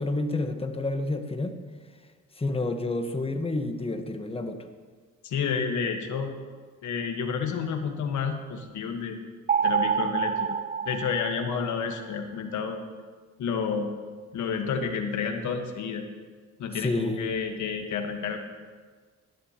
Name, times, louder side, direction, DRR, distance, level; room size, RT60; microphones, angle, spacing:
voice 1, 0.0-1.6 2.4-4.7 16.8-17.3, left 2 dB, 20° left, 7 dB, 1.1 m, -29 dB
voice 2, 5.2-6.3 6.8-9.2 9.6-10.5 10.8-12.8 13.4-13.9 14.3-16.0 16.6-18.4, left 6 dB, 75° left, 5 dB, 1.4 m, -30 dB
sound 1, 9.5-11.9, right 7 dB, 30° right, 0.4 m, -27 dB
17.5 x 11.0 x 2.9 m, 1.5 s
cardioid pair, 90°, 30 cm